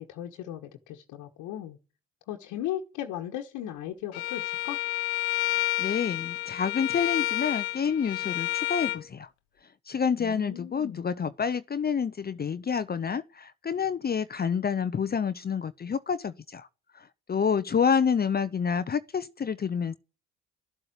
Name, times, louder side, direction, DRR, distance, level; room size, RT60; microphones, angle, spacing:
voice 1, 0.0-1.8 2.3-4.8 10.2-11.1, left 11 dB, 75° left, 1.4 m, -37 dB
Bowed string instrument, 4.1-9.0, left 18 dB, 90° left, 1.0 m, -30 dB
voice 2, 5.8-9.3 9.9-16.7 16.9-20.0, left 6 dB, 30° left, 0.7 m, -28 dB
12.5 x 7.8 x 9.9 m
hypercardioid pair, 60°, 31 cm